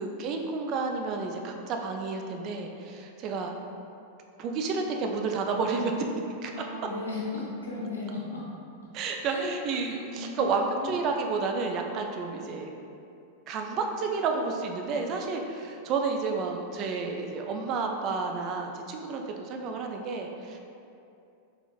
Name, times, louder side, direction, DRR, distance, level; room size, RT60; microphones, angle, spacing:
voice 1, 0.0-3.5 4.4-5.9 6.4-6.5 8.9-12.7 13.5-20.6, right 4 dB, 35° right, 3 dB, 0.3 m, -31 dB
voice 2, 6.5-8.5 9.2-11.0, left 2 dB, 75° left, -6 dB, 0.8 m, -36 dB
3.9 x 2.9 x 2.3 m, 2.6 s
figure-of-eight pair, 90°, 0 cm